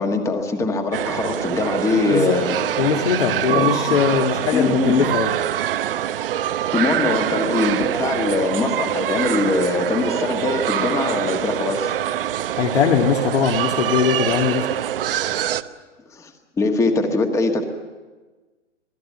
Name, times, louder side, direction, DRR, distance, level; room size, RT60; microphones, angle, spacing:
voice 1, 0.0-2.6 3.5-4.0 4.5-5.1 6.7-11.9 16.1-16.3 16.6-17.7, left 3 dB, 10° left, 5 dB, 1.5 m, -22 dB
sound 1, 0.9-15.6, right 11 dB, 50° right, 0.9 m, -24 dB
voice 2, 2.8-5.3 12.6-14.7, left 7 dB, 55° left, 2 dB, 2.0 m, -20 dB
26.5 x 18.5 x 7.4 m, 1.3 s
hypercardioid pair, 155°, 37 cm